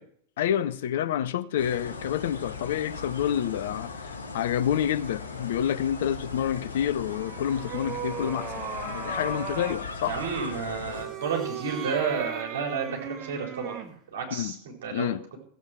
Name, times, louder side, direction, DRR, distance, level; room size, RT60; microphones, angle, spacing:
voice 1, 0.4-10.2 14.3-14.5 14.9-15.2, left 10 dB, 55° left, 0.7 m, -28 dB
sound 1, 1.6-11.0, left 4 dB, 70° left, 1.7 m, -38 dB
sound 2, 6.9-9.9 10.8-14.0, right 8 dB, 30° right, 1.5 m, -38 dB
voice 2, 10.0-15.1, right 6 dB, 55° right, 4.1 m, -31 dB
15.5 x 8.2 x 6.1 m
figure-of-eight pair, 90°, 0 cm